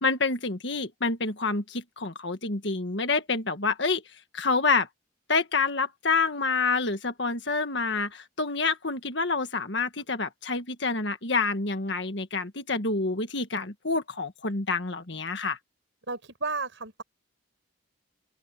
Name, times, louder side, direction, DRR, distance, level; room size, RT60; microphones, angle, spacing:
voice 1, 0.0-4.0 4.3-4.9 5.3-15.6, left 4 dB, 65° left, 1.6 m, -27 dB
voice 2, 16.1-17.0, right 3 dB, 70° right, 5.4 m, -33 dB
open air
head